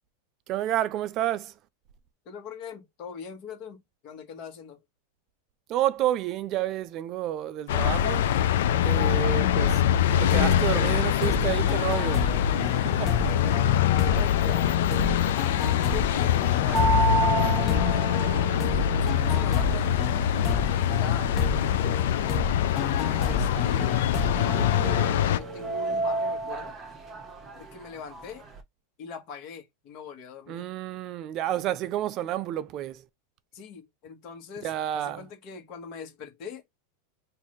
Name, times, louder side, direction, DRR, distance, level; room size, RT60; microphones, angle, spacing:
voice 1, 0.5-1.5 5.7-8.3 8.8-9.8 10.2-12.3 12.6-13.1 30.5-33.1 34.6-35.3, right 12 dB, 35° right, 0.4 m, -30 dB
voice 2, 2.2-4.8 12.9-14.7 15.6-17.0 17.3-18.2 18.6-20.0 20.7-26.7 27.5-28.4 29.0-30.7 33.5-36.6, left 6 dB, 40° left, 1.3 m, -42 dB
sound 1, 7.7-25.4, left 9 dB, 75° left, 0.4 m, -24 dB
sound 2, 10.3-25.7, left 5 dB, 20° left, 0.6 m, -31 dB
sound 3, 16.7-28.6, right 4 dB, 20° right, 1.0 m, -33 dB
3.8 x 2.6 x 3.1 m
supercardioid pair, 155°, 0 cm